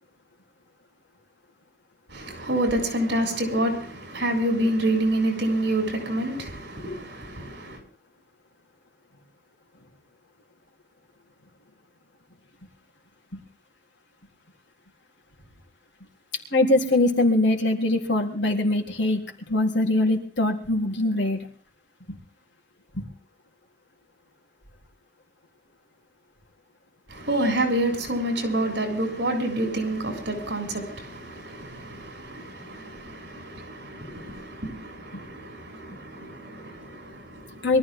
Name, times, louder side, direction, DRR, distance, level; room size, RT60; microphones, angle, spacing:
voice 1, 2.1-7.8 27.1-37.7, right 1 dB, 60° right, 7.4 m, -28 dB
voice 2, 16.5-19.2 19.5-21.4 22.9-23.0 37.6-37.8, left 2 dB, 70° left, 4.0 m, -22 dB
23.5 x 14.5 x 3.8 m
head